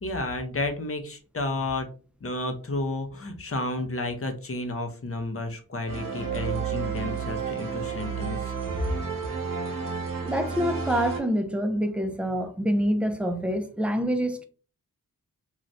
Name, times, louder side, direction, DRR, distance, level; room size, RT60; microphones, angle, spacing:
voice 1, 0.0-1.9 2.2-8.5, left 2 dB, 40° left, 0.8 m, -31 dB
sound 1, 5.9-11.2, right 5 dB, 65° right, 0.9 m, -31 dB
voice 2, 10.2-14.4, equal, 5° right, 0.5 m, -26 dB
2.6 x 2.4 x 3.2 m
cardioid pair, 50°, 36 cm